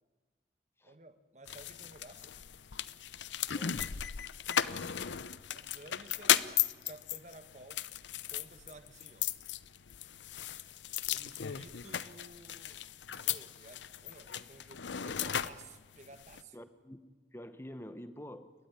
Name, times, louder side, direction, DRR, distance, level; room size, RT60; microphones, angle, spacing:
voice 1, 0.8-2.3 5.5-6.4 6.8-7.8 8.3-9.3 10.5-16.6, right 2 dB, 40° right, 10 dB, 1.4 m, -55 dB
sound 1, 1.5-16.4, left 10 dB, 90° left, 0.7 m, -36 dB
voice 2, 16.5-17.0 17.3-18.5, equal, 15° left, 11 dB, 1.0 m, -47 dB
29.5 x 12.5 x 9.7 m, 1.3 s
head